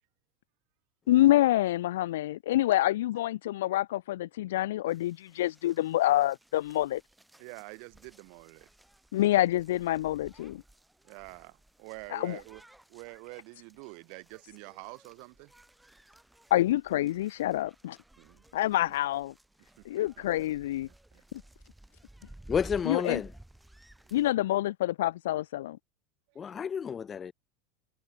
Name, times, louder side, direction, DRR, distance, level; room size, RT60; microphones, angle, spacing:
voice 1, 1.1-7.0 9.1-10.6 12.1-12.4 16.5-18.0 18.5-19.3 19.9-20.9 22.9-23.2 24.1-25.8, left 14 dB, 80° left, 0.5 m, -27 dB
sound 1, 4.9-24.3, right 1 dB, 5° right, 2.0 m, -55 dB
voice 2, 7.4-8.7 11.0-12.6 12.9-15.5 18.2-18.9 19.8-20.5 20.9-21.2 26.3-26.6, right 40 dB or more, 45° right, 2.4 m, -47 dB
voice 3, 22.5-23.3 26.4-27.3, left 7 dB, 15° left, 0.3 m, -31 dB
supercardioid pair, 175°, 0 cm